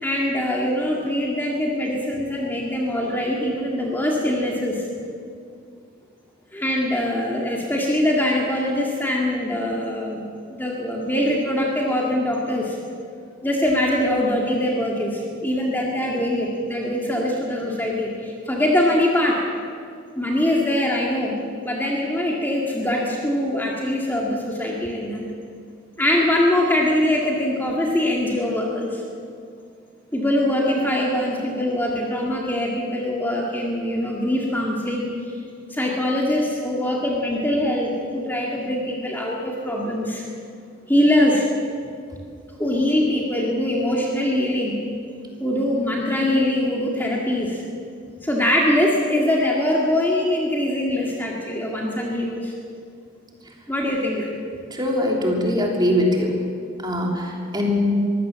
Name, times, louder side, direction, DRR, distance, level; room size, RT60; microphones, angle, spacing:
voice 1, 0.0-4.9 6.5-12.8 13.4-19.4 20.2-21.4 21.6-25.2 26.0-29.0 30.1-35.1 35.7-40.2 40.9-41.5 42.5-44.8 45.4-47.6 48.2-52.5 53.7-54.3, left 1 dB, 10° left, -2 dB, 2.0 m, -23 dB
voice 2, 54.7-56.4 56.8-57.9, left 1 dB, 20° right, -1 dB, 3.2 m, -22 dB
23.0 x 16.0 x 7.5 m, 2.3 s
head